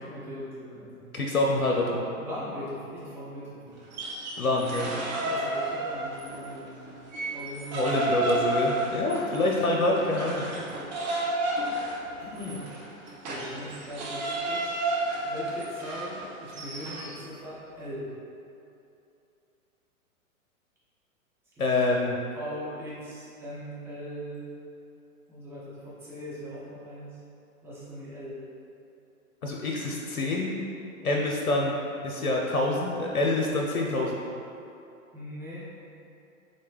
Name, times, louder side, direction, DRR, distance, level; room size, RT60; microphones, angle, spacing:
voice 1, 0.0-1.1 2.2-3.8 5.1-7.9 10.6-10.7 12.2-12.6 13.2-14.7 15.2-18.1 21.5-21.6 22.3-24.5 25.3-27.2 27.6-28.4 31.0-31.2 35.1-35.7, equal, 5° right, -10 dB, 0.9 m, -40 dB
voice 2, 1.1-2.0 4.4-4.9 7.7-10.4 21.6-22.2 29.4-30.5 31.0-31.8 32.0-34.1, left 2 dB, 75° left, -1 dB, 0.6 m, -26 dB
sound 1, 3.8-6.5 6.9-17.1, right 1 dB, 30° right, 0.6 m, -31 dB
4.1 x 3.6 x 3.4 m, 2.7 s
figure-of-eight pair, 110°, 43 cm